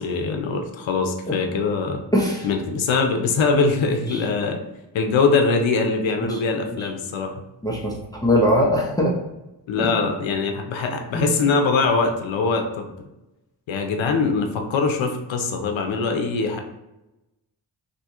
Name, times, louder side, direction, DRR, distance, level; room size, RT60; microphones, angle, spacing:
voice 1, 0.0-2.0 2.4-4.6 4.9-7.4 9.7-12.9 13.7-16.6, left 4 dB, 85° left, 4 dB, 0.6 m, -22 dB
voice 2, 2.1-2.5 4.1-4.2 6.2-6.4 6.8-6.9 7.6-9.1 9.8-9.9 11.1-11.3, equal, 10° left, -3 dB, 0.7 m, -21 dB
2.8 x 2.7 x 3.5 m, 0.95 s
cardioid pair, 60°, 45 cm